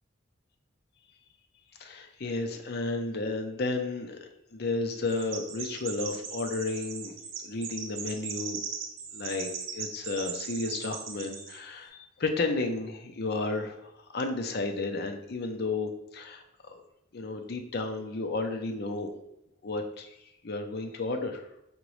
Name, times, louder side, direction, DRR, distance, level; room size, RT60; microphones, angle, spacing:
voice 1, 1.8-4.2 4.5-7.1 7.4-8.6 9.1-16.8 17.1-19.1 19.6-20.1 20.4-21.5, left 3 dB, 55° left, 4 dB, 0.6 m, -32 dB
Chirp tweet, 5.1-11.6, right 6 dB, 85° right, 0.7 m, -39 dB
5.1 x 3.0 x 3.1 m, 0.83 s
head